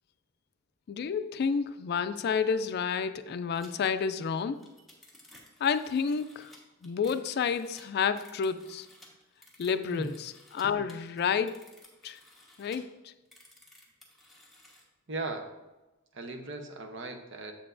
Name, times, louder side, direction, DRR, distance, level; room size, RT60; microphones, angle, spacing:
voice 1, 0.9-4.6 5.6-6.5 6.8-8.9 9.6-11.6 12.0-12.2 12.6-13.1, left 6 dB, 50° left, 12 dB, 0.3 m, -30 dB
sound 1, 3.5-3.7 4.0-4.1 4.4-10.6 10.9-12.8 13.3-14.8, left 1 dB, ahead, 1.2 m, -56 dB
voice 2, 15.1-15.5 16.1-17.5, right 3 dB, 60° right, 5 dB, 0.8 m, -37 dB
7.6 x 6.7 x 2.6 m, 1.1 s
head